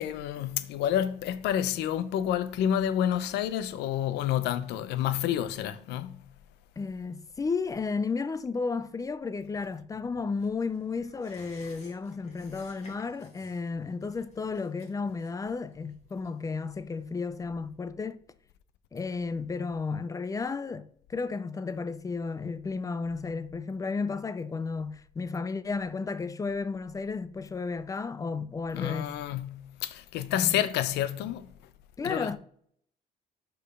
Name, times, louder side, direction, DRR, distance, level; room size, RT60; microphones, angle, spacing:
voice 1, 0.0-6.3 28.7-31.5 32.0-32.4, left 10 dB, 85° left, 0.6 m, -29 dB
voice 2, 6.8-18.2 18.9-29.1 30.3-30.6 32.0-32.4, left 4 dB, 20° left, 0.4 m, -33 dB
sound 1, 10.4-17.4 17.7-17.8, left 3 dB, 40° left, 2.2 m, -56 dB
5.1 x 4.5 x 5.5 m
cardioid pair, 110°, 17 cm